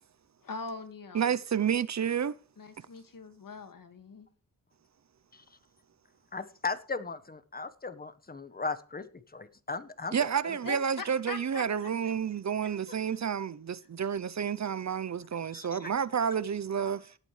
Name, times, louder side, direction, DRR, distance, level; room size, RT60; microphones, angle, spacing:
voice 1, 0.4-1.3 2.6-4.3 10.6-11.9, left 4 dB, 65° left, 2.1 m, -42 dB
voice 2, 1.1-2.3 10.1-17.1, right 7 dB, 50° right, 0.7 m, -30 dB
voice 3, 6.3-10.2 10.4-10.6 15.5-15.9 16.8-16.9, left 4 dB, 25° left, 1.2 m, -37 dB
18.0 x 8.9 x 3.3 m
cardioid pair, 65°, 35 cm